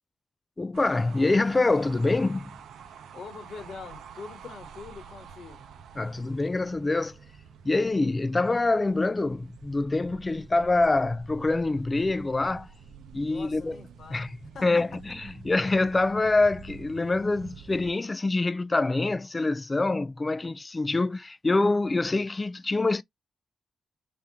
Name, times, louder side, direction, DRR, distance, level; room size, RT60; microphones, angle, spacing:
voice 1, 0.6-2.5 6.0-7.2 7.7-12.7 13.1-13.8 14.1-23.0, left 2 dB, 30° left, 0.4 m, -25 dB
sound 1, 0.7-17.9, right 6 dB, 90° right, 0.6 m, -48 dB
voice 2, 3.1-5.7 13.2-14.3 14.5-14.8, left 5 dB, 75° left, 1.7 m, -43 dB
3.5 x 3.5 x 2.8 m
cardioid pair, 55°, 0 cm